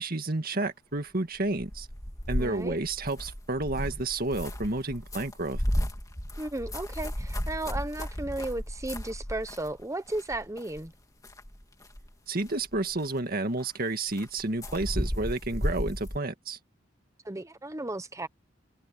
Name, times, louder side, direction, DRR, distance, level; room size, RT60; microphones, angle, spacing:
voice 1, 0.0-1.9 2.3-5.6 12.3-16.6, right 2 dB, 50° right, 2.0 m, -31 dB
sound 1, 1.5-9.8 10.1-10.9 11.2-12.1 12.4-13.1 13.6-13.7 14.1-16.2, equal, 20° left, 2.7 m, -34 dB
voice 2, 2.4-2.8 6.4-10.9 17.2-18.3, right 2 dB, 15° right, 1.0 m, -34 dB
head